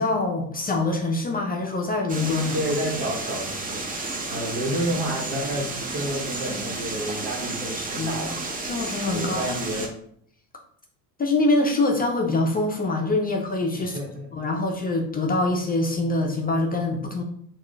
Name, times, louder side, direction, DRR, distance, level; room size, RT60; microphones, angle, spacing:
voice 1, 0.0-2.6 7.6-8.3 8.6-9.9 11.2-14.0 14.3-17.2, left 2 dB, 20° left, 1 dB, 0.5 m, -25 dB
sound 1, 2.1-9.9, right 3 dB, 20° right, 0.7 m, -32 dB
voice 2, 2.5-3.8 4.3-8.4 9.1-9.9 13.8-14.3, right 1 dB, 60° right, 0 dB, 1.3 m, -30 dB
3.6 x 2.5 x 3.3 m, 0.64 s
hypercardioid pair, 70°, 44 cm